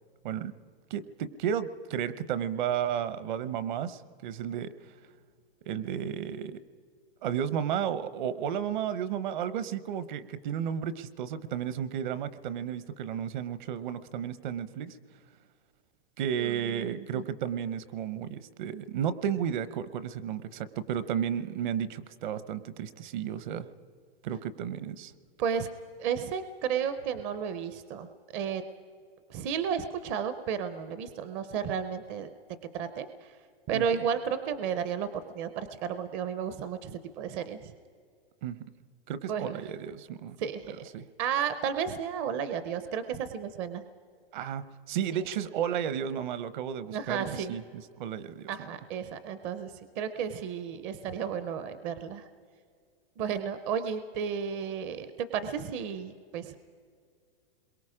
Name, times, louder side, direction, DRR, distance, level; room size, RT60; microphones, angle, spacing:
voice 1, 0.9-4.7 5.7-6.6 7.2-15.0 16.2-23.7 24.2-25.1 33.7-33.8 38.4-38.6 39.1-40.4 40.9-41.1 44.3-48.7, right 9 dB, 50° right, 15 dB, 0.9 m, -33 dB
voice 2, 16.4-17.2 25.4-25.7 26.0-28.1 28.3-28.6 29.3-32.3 32.7-33.3 33.7-35.1 35.3-37.7 39.3-39.6 40.4-40.8 41.2-43.8 46.9-47.5 48.5-52.2 53.2-56.6, right 7 dB, 25° right, 11 dB, 0.6 m, -33 dB
28.5 x 22.5 x 5.0 m, 2.1 s
supercardioid pair, 165°, 30 cm